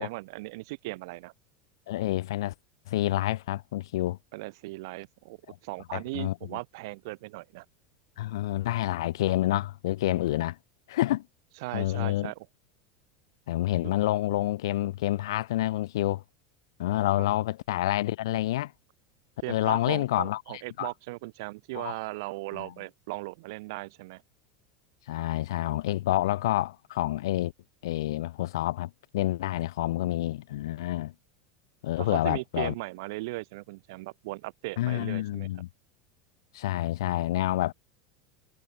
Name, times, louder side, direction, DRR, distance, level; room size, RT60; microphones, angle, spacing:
voice 1, 0.0-1.3 4.3-5.4 5.6-7.6 11.6-12.4 13.9-14.0 17.1-17.2 19.4-24.2 32.0-35.5, right 23 dB, 65° right, 1.1 m, -38 dB
voice 2, 1.9-2.5 2.9-4.2 5.5-5.6 5.9-6.3 8.2-10.6 10.9-11.2 11.7-12.3 13.5-16.2 16.8-18.7 19.5-20.4 20.8-20.9 21.7-21.9 22.5-22.7 25.1-27.5 27.8-31.1 31.8-32.7 34.8-35.7 36.5-37.7, left 15 dB, 90° left, 1.5 m, -28 dB
supercardioid pair, 160°, 2 cm